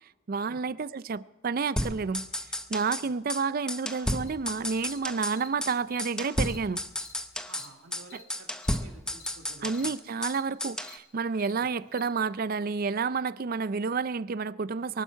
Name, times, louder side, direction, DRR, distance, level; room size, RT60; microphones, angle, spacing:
voice 1, 0.3-2.2 2.7-6.8 9.6-15.0, right 5 dB, 40° right, 0.4 m, -30 dB
sound 1, 1.8-3.0 3.3-3.4 3.7-5.4 5.6-5.7 6.0-7.7 7.9-8.0 8.3-10.3 10.6-10.9, left 1 dB, 5° left, 0.6 m, -33 dB
Cricket, 4.2-4.3 4.9-5.0 5.4-5.5 5.9-6.0 6.4-6.6 7.0-7.1 7.5-7.7 8.1-8.2 8.6-8.8 9.2-9.3 9.7-9.9 10.3-10.4 10.8-11.0 11.4-11.5 11.9-12.0, left 6 dB, 35° left, 2.0 m, -49 dB
voice 2, 7.5-10.0 11.6-11.7, right 2 dB, 80° right, 1.9 m, -52 dB
23.0 x 12.0 x 4.5 m
head